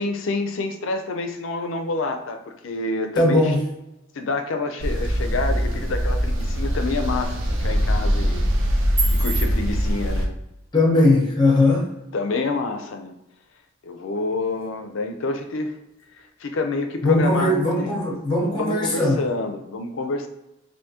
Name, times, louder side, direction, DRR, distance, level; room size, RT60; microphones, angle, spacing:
voice 1, 0.0-3.5 4.2-8.4 9.1-10.4 12.1-13.1 13.8-15.8 16.2-17.9 18.6-20.3, left 3 dB, 70° left, 6 dB, 0.5 m, -28 dB
voice 2, 3.2-3.6 10.7-11.9 17.0-19.3, left 2 dB, 20° left, -2 dB, 0.8 m, -19 dB
sound 1, 4.8-10.3, equal, 65° right, 0.7 m, -22 dB
sound 2, 5.5-19.5, right 5 dB, 40° right, 1.3 m, -40 dB
3.6 x 2.6 x 2.8 m, 0.92 s
head